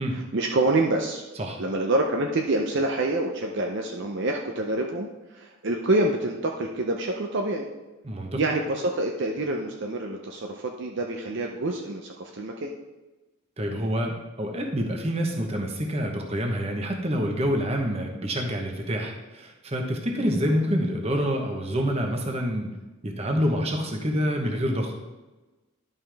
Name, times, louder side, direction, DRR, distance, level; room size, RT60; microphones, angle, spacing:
voice 1, 0.3-1.2 1.6-7.7 8.4-12.7 20.1-20.4, right 2 dB, 50° right, 1 dB, 0.6 m, -27 dB
voice 2, 8.0-8.4 13.6-22.7 23.0-24.9, equal, 25° right, 2 dB, 1.0 m, -27 dB
11.0 x 5.5 x 3.4 m, 1.1 s
head